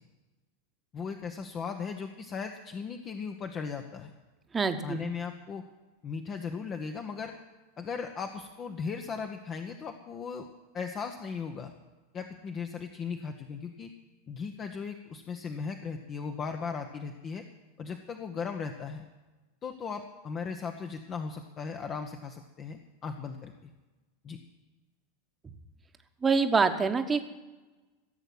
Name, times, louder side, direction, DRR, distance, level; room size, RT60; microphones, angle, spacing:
voice 1, 0.9-4.1 4.8-5.6 6.0-7.3 7.8-10.5 10.7-11.7 12.1-13.9 14.3-17.4 17.8-19.0 19.6-23.7 24.2-24.4, left 5 dB, 30° left, 5 dB, 1.1 m, -37 dB
voice 2, 4.5-5.0 26.2-27.3, right 4 dB, 20° right, 8 dB, 1.3 m, -25 dB
16.0 x 8.0 x 9.4 m, 1.2 s
figure-of-eight pair, 85°, 0 cm